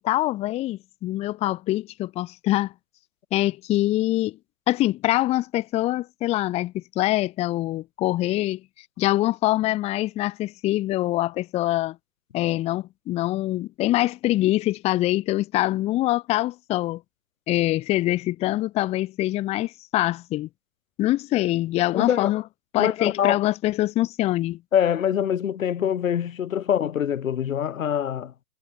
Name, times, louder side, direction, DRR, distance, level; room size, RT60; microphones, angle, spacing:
voice 1, 0.0-2.7 3.3-4.4 4.7-8.6 9.0-12.0 12.3-17.0 17.5-20.5 21.0-22.4 22.7-24.6, left 16 dB, 15° left, 0.5 m, -24 dB
voice 2, 21.9-22.3 22.8-23.4 24.7-28.3, left 9 dB, 80° left, 3.2 m, -24 dB
hypercardioid pair, 120°, 40 cm